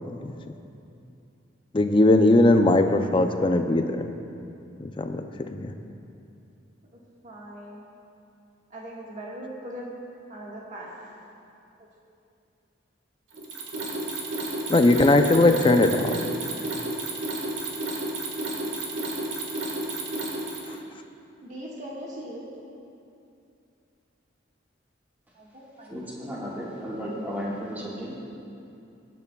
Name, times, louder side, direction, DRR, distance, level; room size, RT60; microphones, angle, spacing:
voice 1, 1.7-4.1 4.8-5.7 14.7-16.2, left 2 dB, 25° left, 7 dB, 0.4 m, -20 dB
voice 2, 6.9-7.9 8.7-9.9 10.3-11.2 21.4-22.5 25.4-26.0, equal, 40° right, -4 dB, 1.6 m, -40 dB
Mechanisms, 13.3-20.8, right 2 dB, 80° right, 1.6 m, -31 dB
voice 3, 25.9-28.1, equal, 10° right, -6 dB, 1.7 m, -34 dB
22.0 x 8.3 x 2.3 m, 2.6 s
head